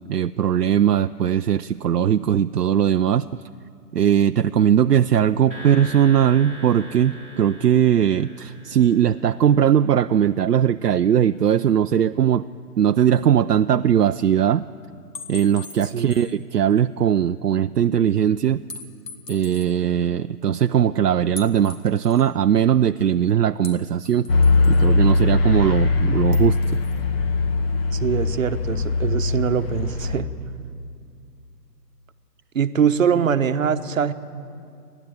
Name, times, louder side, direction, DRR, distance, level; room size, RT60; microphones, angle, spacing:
voice 1, 0.1-3.3 3.9-12.5 12.8-14.7 15.3-18.6 19.3-24.3 24.8-26.8, right 9 dB, 70° right, 9 dB, 0.6 m, -19 dB
sound 1, 5.5-10.0, left 1 dB, 20° left, 2.9 m, -40 dB
sound 2, 15.2-16.4 16.8-16.9 18.7-19.7 21.4-22.3 23.6-24.9 26.3-27.0, left 3 dB, 80° left, 2.6 m, -40 dB
voice 2, 15.8-16.2 27.9-30.3 32.5-34.1, right 7 dB, 50° right, 10 dB, 1.1 m, -22 dB
sound 3, 24.3-30.2, left 3 dB, 35° left, 1.3 m, -20 dB
29.5 x 11.0 x 9.0 m, 2.4 s
figure-of-eight pair, 140°, 49 cm